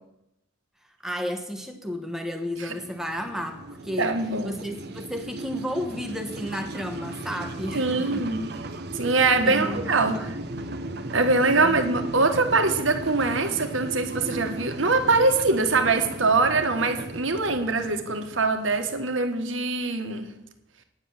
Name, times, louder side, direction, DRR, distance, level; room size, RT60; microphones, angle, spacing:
voice 1, 1.0-4.2 4.4-8.3 9.4-9.9 10.1-10.4 11.6-11.7, equal, ahead, 5 dB, 1.2 m, -32 dB
sound 1, 2.6-19.3, right 2 dB, 55° right, 0.9 m, -36 dB
voice 2, 4.0-4.6 7.7-8.4 8.9-10.3 11.1-20.3, right 3 dB, 80° right, 6 dB, 1.5 m, -23 dB
9.8 x 9.6 x 7.2 m, 0.84 s
head